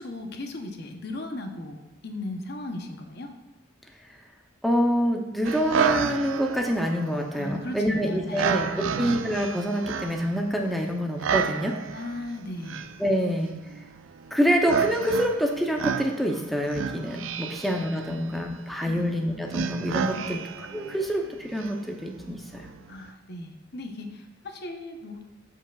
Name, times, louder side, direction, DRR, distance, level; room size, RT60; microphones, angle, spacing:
voice 1, 0.0-3.3 7.3-9.1 11.9-12.8 17.4-17.5 18.1-18.2 18.9-19.0 20.2-20.4 22.9-25.2, left 1 dB, 55° left, 4 dB, 0.8 m, -37 dB
voice 2, 4.6-11.7 13.0-13.5 14.3-22.7, equal, ahead, 0 dB, 0.6 m, -26 dB
sound 1, 5.4-23.1, right 6 dB, 75° right, 0.4 m, -32 dB
13.0 x 4.7 x 2.3 m, 1.1 s
head